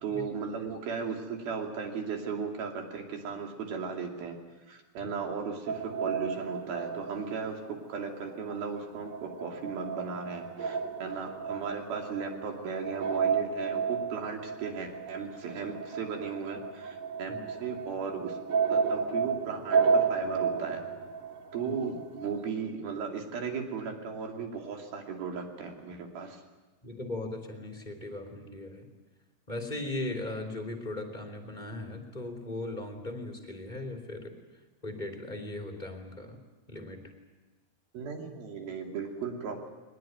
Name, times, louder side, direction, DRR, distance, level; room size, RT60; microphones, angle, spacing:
voice 1, 0.0-4.4 4.7-17.3 17.6-18.4 18.7-20.8 21.5-26.4 37.9-39.7, right 5 dB, 70° right, 2 dB, 4.5 m, -36 dB
sound 1, 5.7-8.2 8.5-22.4, right 5 dB, 45° right, 2.1 m, -32 dB
voice 2, 26.8-28.9 29.5-34.3 34.8-36.4 36.7-37.1, left 2 dB, 15° left, 2 dB, 2.6 m, -38 dB
22.0 x 20.5 x 9.2 m, 1.2 s
omnidirectional pair, 4.5 m